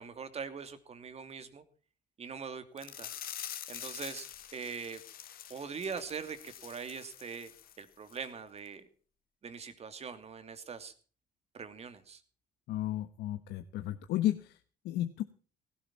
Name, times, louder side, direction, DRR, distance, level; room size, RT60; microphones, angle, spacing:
voice 1, 0.0-1.6 2.2-3.1 3.7-4.3 4.5-5.0 5.5-7.5 7.8-8.8 9.4-10.9 11.5-12.2, right 6 dB, 40° right, 10 dB, 2.7 m, -42 dB
sound 1, 2.8-7.8 8.1-8.3 8.7-8.8, left 11 dB, 60° left, 2.0 m, -46 dB
voice 2, 12.7-14.6 14.8-15.2, left 13 dB, 80° left, 9 dB, 1.2 m, -33 dB
17.0 x 16.0 x 4.3 m, 0.40 s
cardioid pair, 110°, 17 cm